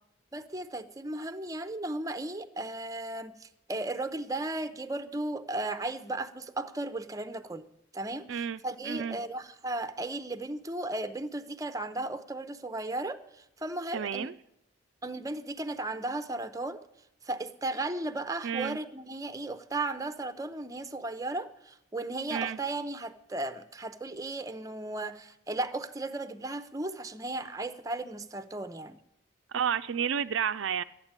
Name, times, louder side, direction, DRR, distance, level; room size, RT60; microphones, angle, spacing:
voice 1, 0.3-7.6 7.9-14.3 15.0-16.8 17.2-29.0, right 2 dB, 15° right, 0.7 m, -35 dB
voice 2, 8.3-9.2 13.9-14.3 18.4-18.8 22.3-22.6 29.5-30.8, right 7 dB, 65° right, 0.4 m, -31 dB
13.0 x 9.6 x 8.9 m
head